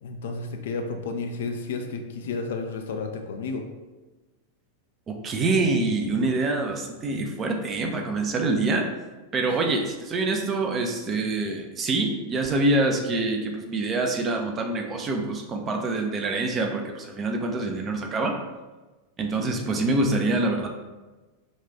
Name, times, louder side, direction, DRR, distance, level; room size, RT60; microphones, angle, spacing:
voice 1, 0.0-3.7 9.5-9.6 19.4-19.5, left 4 dB, 60° left, 5 dB, 0.4 m, -32 dB
voice 2, 5.1-8.9 9.3-18.4 19.2-20.7, right 2 dB, 25° right, 3 dB, 0.5 m, -25 dB
4.2 x 2.4 x 3.4 m, 1.2 s
figure-of-eight pair, 90°, 0 cm